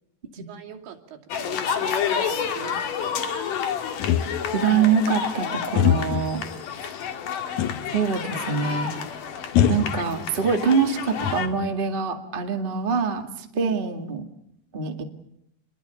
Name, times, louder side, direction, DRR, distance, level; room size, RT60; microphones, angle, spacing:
voice 1, 0.3-3.2 13.5-13.8, right 8 dB, 75° right, 2 dB, 4.9 m, -43 dB
sound 1, 1.3-11.5, left 7 dB, 55° left, 2.9 m, -30 dB
sound 2, 4.0-4.7 5.8-6.3 7.6-8.0 8.3-8.4 9.5-10.6 11.0-11.8, left 8 dB, 85° left, 1.6 m, -23 dB
voice 2, 4.5-6.4 7.9-8.9 9.7-14.3 14.7-15.0, right 6 dB, 45° right, 4 dB, 0.7 m, -24 dB
28.5 x 22.0 x 7.1 m, 0.75 s
omnidirectional pair, 5.2 m